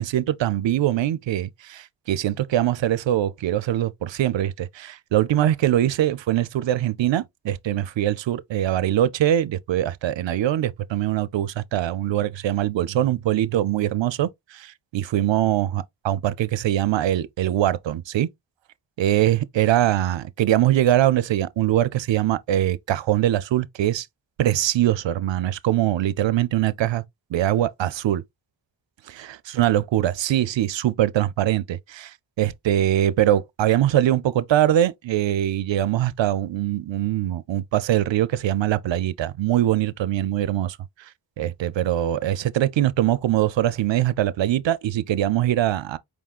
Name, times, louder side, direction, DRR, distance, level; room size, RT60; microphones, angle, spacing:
voice 1, 0.0-18.3 19.0-24.1 24.4-27.0 27.3-28.2 29.1-29.3 29.5-40.8 41.4-46.0, right 12 dB, 85° right, 0.5 m, -22 dB
4.8 x 3.7 x 2.4 m
wide cardioid pair, 125°, 43 cm